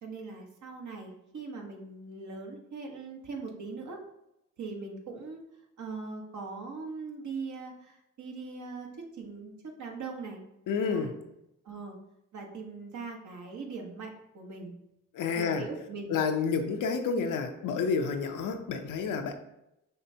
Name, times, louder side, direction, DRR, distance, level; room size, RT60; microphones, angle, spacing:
voice 1, 0.0-4.0 4.6-5.4 5.8-10.4 10.9-11.1 11.6-12.0 12.3-14.7 15.3-16.2, right 4 dB, 65° right, 1 dB, 1.1 m, -41 dB
voice 2, 10.7-11.2 15.1-15.6 16.1-19.3, left 5 dB, 80° left, 5 dB, 0.6 m, -29 dB
5.7 x 3.2 x 2.7 m, 0.86 s
cardioid pair, 60°, 31 cm